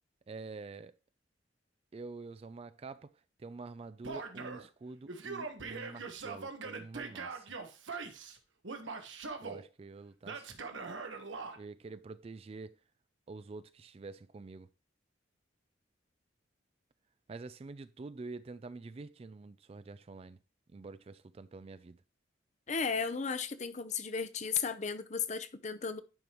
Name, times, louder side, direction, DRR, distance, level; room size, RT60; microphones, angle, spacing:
voice 1, 0.3-0.9 1.9-3.1 3.4-7.5 9.4-10.6 11.6-12.8 13.3-14.7 17.3-20.4 20.7-22.0, right 3 dB, 30° right, 0.3 m, -47 dB
Male speech man speaking / Yell, 4.0-4.7 5.1-8.4 8.6-9.6 10.2-11.6, right 4 dB, 90° right, 1.3 m, -42 dB
voice 2, 22.7-26.0, left 6 dB, 40° left, 0.7 m, -35 dB
10.5 x 5.1 x 3.0 m
head